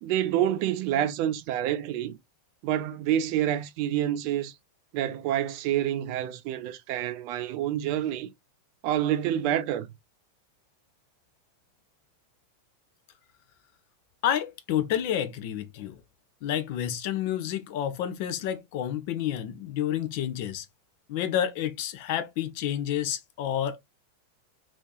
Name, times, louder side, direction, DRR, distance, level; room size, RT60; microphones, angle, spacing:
voice 1, 0.0-2.2 2.6-4.5 4.9-8.3 8.8-9.9, right 11 dB, 45° right, 0.5 m, -27 dB
voice 2, 14.2-16.0 16.4-20.7 21.1-23.8, left 10 dB, 45° left, 0.5 m, -29 dB
3.1 x 2.7 x 2.3 m
figure-of-eight pair, 90°, 0 cm